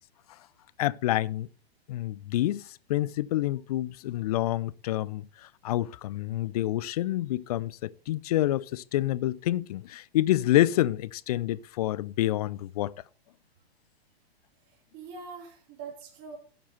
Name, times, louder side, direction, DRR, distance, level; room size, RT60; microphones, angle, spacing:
voice 1, 0.8-1.5 1.9-12.9, left 14 dB, 40° left, 0.5 m, -28 dB
voice 2, 14.7-16.4, right 5 dB, 35° right, 3.6 m, -43 dB
12.0 x 6.7 x 5.6 m
figure-of-eight pair, 115°, 32 cm